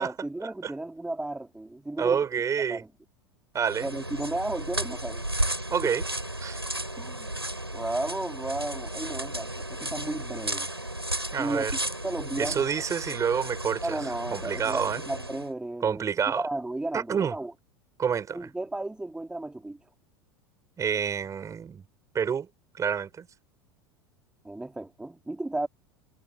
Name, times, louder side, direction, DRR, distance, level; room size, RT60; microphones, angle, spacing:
voice 1, 0.0-2.2 2.7-2.9 3.8-5.2 7.0-7.3 7.7-10.7 11.4-11.7 12.0-12.6 13.8-17.5 18.3-19.8 24.4-25.7, right 2 dB, 5° right, 3.4 m, -34 dB
voice 2, 2.0-2.8 3.5-3.9 5.7-6.0 6.4-6.6 11.3-11.8 12.4-14.0 14.3-15.0 15.8-16.5 16.9-17.4 18.0-18.5 20.8-21.8 22.1-22.5 22.8-23.3, right 7 dB, 25° right, 6.9 m, -28 dB
sound 1, 3.6-15.5, right 1 dB, 90° right, 6.1 m, -34 dB
figure-of-eight pair, 80°, 13 cm